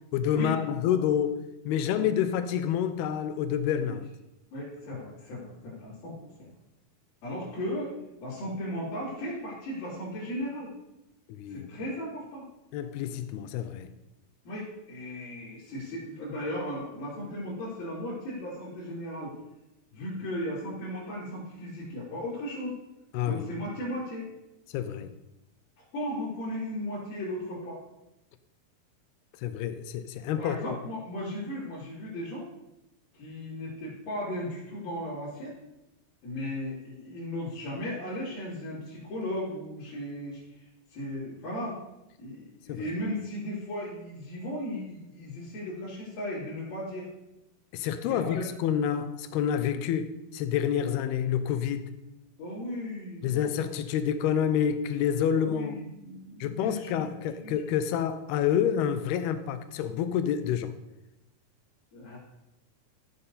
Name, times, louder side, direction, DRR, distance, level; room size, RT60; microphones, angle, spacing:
voice 1, 0.1-4.1 11.3-11.7 12.7-13.9 23.1-23.5 24.7-25.1 29.4-30.8 42.7-42.9 47.7-51.9 53.2-55.8 56.4-60.8, left 9 dB, 85° left, 2.6 m, -28 dB
voice 2, 4.5-6.5 7.2-8.0 8.2-10.7 11.5-12.5 14.4-19.4 19.9-22.8 23.2-24.3 25.9-27.8 30.4-32.5 33.1-35.5 36.2-41.8 42.2-47.1 48.0-48.5 49.7-49.8 52.4-53.5 55.3-57.1 57.4-57.5 61.9-62.2, left 1 dB, 65° left, 4.9 m, -36 dB
15.0 x 7.1 x 4.1 m
omnidirectional pair, 4.5 m